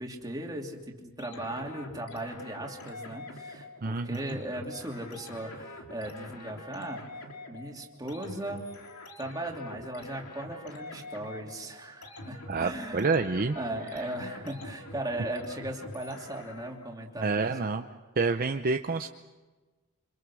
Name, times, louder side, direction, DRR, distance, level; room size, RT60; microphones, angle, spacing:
voice 1, 0.0-7.0 7.5-8.7 9.2-13.1 13.5-17.6, right 1 dB, 15° right, 0 dB, 2.9 m, -37 dB
sound 1, 1.2-16.9, left 2 dB, 85° left, 3.1 m, -45 dB
voice 2, 3.8-4.4 12.5-13.6 13.9-14.1 17.2-17.8 18.2-19.1, right 4 dB, 40° right, 6 dB, 0.7 m, -28 dB
27.5 x 26.0 x 6.3 m, 1.3 s
head